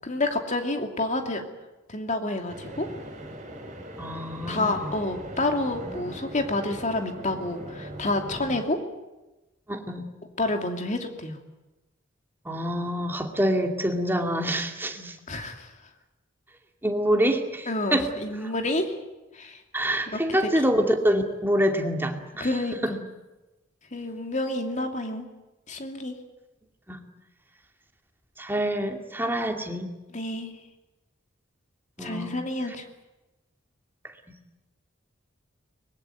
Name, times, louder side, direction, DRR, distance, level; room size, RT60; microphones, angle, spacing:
voice 1, 0.0-1.4 1.9-2.9 4.5-8.8 10.4-11.4 15.0-15.7 17.7-18.9 19.3-19.6 20.1-20.5 22.4-23.0 23.9-25.3 25.7-26.1 30.1-30.5 32.0-32.8, left 2 dB, 40° left, 5 dB, 2.8 m, -29 dB
sound 1, 2.5-8.6, right 1 dB, 35° right, 6.6 m, -40 dB
voice 2, 4.0-4.9 9.7-10.1 12.5-15.1 16.8-18.1 19.7-22.5 22.8-22.9 26.9-27.0 28.4-29.9 32.0-32.4, equal, 10° right, 4 dB, 2.4 m, -26 dB
24.0 x 21.5 x 9.3 m, 1.0 s
head